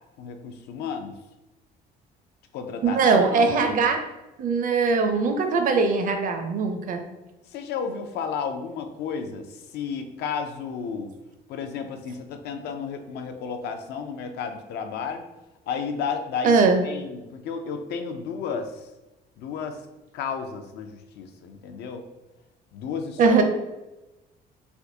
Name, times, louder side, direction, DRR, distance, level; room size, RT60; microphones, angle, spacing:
voice 1, 0.2-1.1 2.5-3.9 7.5-11.1 11.5-15.2 15.7-16.5 16.8-18.9 19.4-19.8 20.1-20.9 21.2-22.0 22.7-23.4, left 6 dB, 75° left, 6 dB, 0.5 m, -32 dB
voice 2, 2.8-4.0 4.4-7.0 16.4-16.8 23.2-23.4, right 4 dB, 55° right, 5 dB, 0.5 m, -21 dB
3.5 x 2.5 x 2.7 m, 1.0 s
cardioid pair, 110°, 17 cm